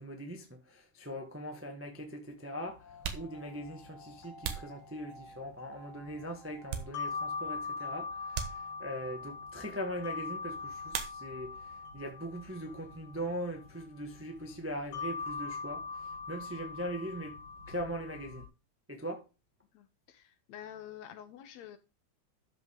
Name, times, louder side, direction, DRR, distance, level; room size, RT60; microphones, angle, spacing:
voice 1, 0.0-17.4 17.7-18.4 18.9-19.2, equal, 10° right, 0.6 m, -41 dB
sound 1, 1.1-1.2 2.2-2.3 2.9-5.5 6.0-7.4 7.7-7.8 8.3-9.1 10.9-11.7 11.9-12.6 12.9-15.1, right 8 dB, 80° right, 2.6 m, -43 dB
sound 2, 2.6-18.4, left 4 dB, 90° left, 4.6 m, -43 dB
voice 2, 19.7-21.8, left 10 dB, 70° left, 2.1 m, -48 dB
12.5 x 5.6 x 3.7 m
omnidirectional pair, 3.5 m